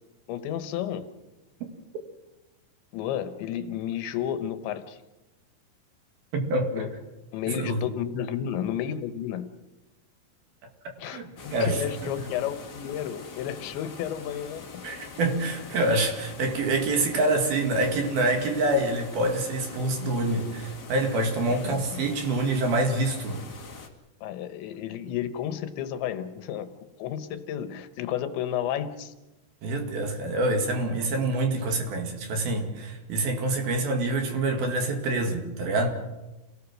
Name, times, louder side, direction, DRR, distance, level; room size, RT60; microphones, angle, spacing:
voice 1, 0.3-1.1 2.9-5.0 6.7-6.9 7.3-9.5 11.0-14.8 21.5-22.0 24.2-26.7 27.0-29.1, left 10 dB, 80° left, 10 dB, 3.3 m, -32 dB
voice 2, 6.3-6.9 7.5-7.8 11.0-12.1 14.8-23.4 29.6-35.9, right 2 dB, 60° right, 4 dB, 3.9 m, -26 dB
sound 1, 11.4-23.9, left 4 dB, 35° left, 1.6 m, -43 dB
28.5 x 18.0 x 6.3 m, 1.0 s
omnidirectional pair, 5.3 m